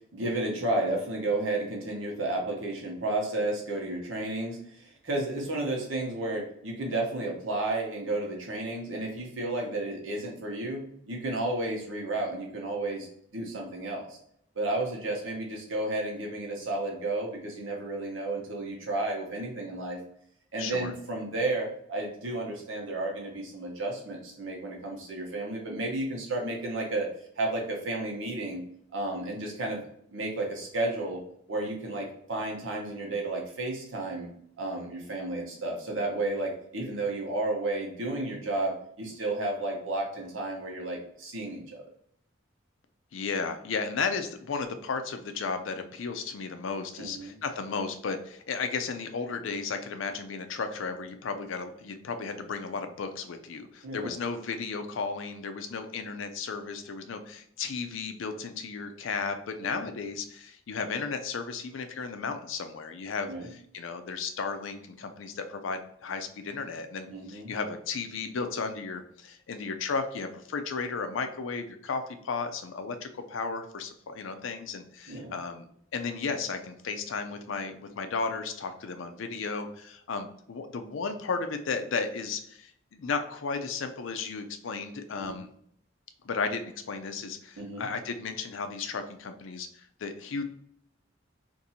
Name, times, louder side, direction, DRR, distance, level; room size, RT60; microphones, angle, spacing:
voice 1, 0.1-14.2 14.6-20.0 20.5-27.1 27.4-28.6 28.9-29.8 30.1-31.2 31.5-34.3 34.6-41.8 47.0-47.3 53.8-54.1 59.6-59.8 63.3-63.5 67.1-67.5 75.1-75.3 85.1-85.4 87.6-87.9, right 2 dB, 85° right, 0 dB, 1.0 m, -32 dB
voice 2, 20.6-20.9 43.1-75.7 75.9-85.5 86.2-90.4, left 4 dB, 75° left, 8 dB, 0.5 m, -34 dB
2.6 x 2.6 x 4.1 m, 0.67 s
head